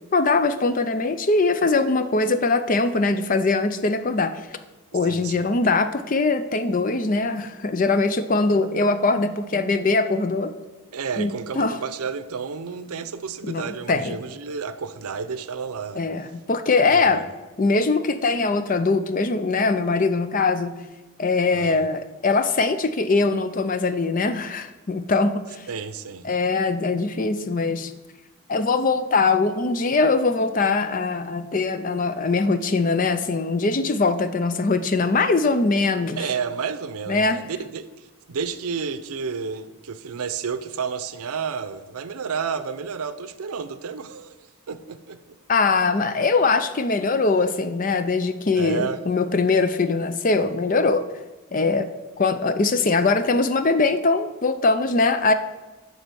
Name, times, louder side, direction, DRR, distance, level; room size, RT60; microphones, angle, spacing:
voice 1, 0.1-4.3 4.9-10.5 11.2-11.8 13.4-14.2 15.9-17.2 17.6-20.7 21.2-25.7 26.2-27.9 28.5-36.2 37.1-37.4 45.5-51.0 51.5-51.9 52.2-55.3, left 3 dB, 35° left, 11 dB, 0.5 m, -22 dB
voice 2, 5.0-5.5 10.9-16.0 16.9-17.3 21.5-21.8 25.7-26.3 36.2-44.4 44.7-45.4 48.5-49.0, right 6 dB, 85° right, 12 dB, 0.6 m, -31 dB
10.5 x 4.2 x 6.9 m, 1.2 s
head